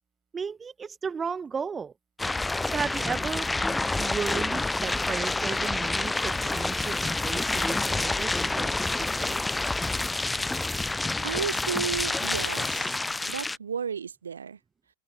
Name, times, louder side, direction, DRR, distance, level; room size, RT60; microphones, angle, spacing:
voice 1, 0.3-1.9 2.7-3.5 4.0-9.4, right 6 dB, 15° right, 4.9 m, -34 dB
sound 1, 2.2-13.6, left 2 dB, 5° left, 0.5 m, -28 dB
voice 2, 11.2-12.9 13.3-14.6, right 7 dB, 70° right, 7.8 m, -33 dB
open air
figure-of-eight pair, 90°, 0 cm